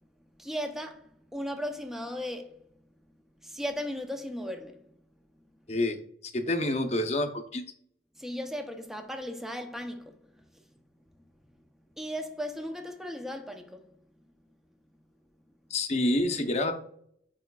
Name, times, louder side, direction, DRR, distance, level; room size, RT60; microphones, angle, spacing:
voice 1, 0.4-2.5 3.4-4.8 8.2-10.2 12.0-13.9, equal, ahead, 0.6 m, -36 dB
voice 2, 5.7-7.6 15.7-16.7, left 1 dB, 40° left, 0.7 m, -28 dB
8.1 x 5.0 x 2.3 m
head